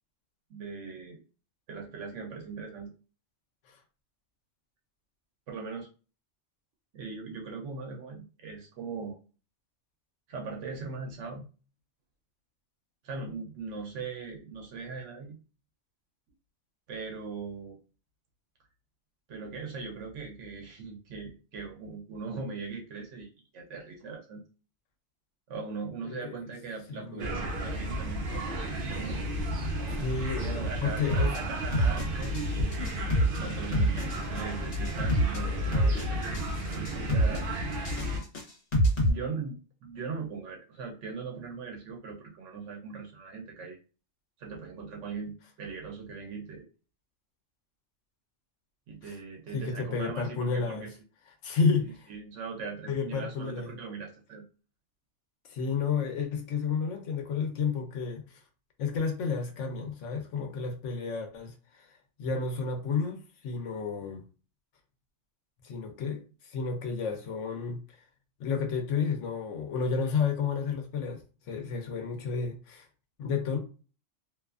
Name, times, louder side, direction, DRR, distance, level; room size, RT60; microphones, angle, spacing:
voice 1, 0.5-1.2 1.7-2.9 5.5-5.9 6.9-9.2 10.3-11.5 13.0-15.4 16.9-17.8 19.3-24.4 25.5-29.2 30.4-36.4 36.7-37.4 39.0-43.8 44.4-46.7 48.9-50.9 52.1-54.4, right 5 dB, 90° right, 0.9 m, -40 dB
voice 2, 26.9-27.4 30.0-31.3 36.6-36.7 49.5-50.9 51.4-52.1 52.9-53.8 55.5-58.4 58.8-64.2 65.6-67.8 68.4-72.9 73.2-73.6, left 5 dB, 90° left, 1.0 m, -31 dB
sound 1, 27.2-38.2, equal, 55° right, 0.7 m, -33 dB
sound 2, 31.1-31.4 31.7-32.5 32.7-33.4 33.7-34.4 34.7-35.4 35.7-36.5 36.7-37.4 37.7-39.1, right 1 dB, 65° left, 1.1 m, -26 dB
2.6 x 2.3 x 2.4 m
omnidirectional pair, 1.2 m